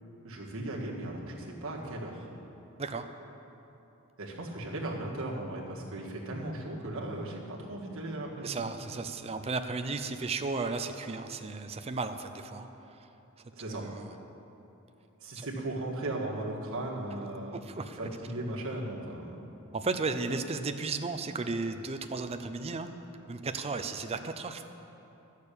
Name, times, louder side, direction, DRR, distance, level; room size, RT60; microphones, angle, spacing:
voice 1, 0.2-2.3 4.2-8.6 13.5-13.9 15.2-17.6 18.0-19.4, right 1 dB, 65° right, -2 dB, 1.8 m, -37 dB
sound 1, 4.8-7.6, left 2 dB, 45° left, 0.9 m, -52 dB
voice 2, 8.4-12.7 13.7-14.1 15.4-15.5 17.5-18.1 18.3-18.4 19.7-22.9 23.3-24.6, right 3 dB, 30° right, 7 dB, 0.5 m, -34 dB
12.0 x 6.6 x 8.4 m, 3.0 s
head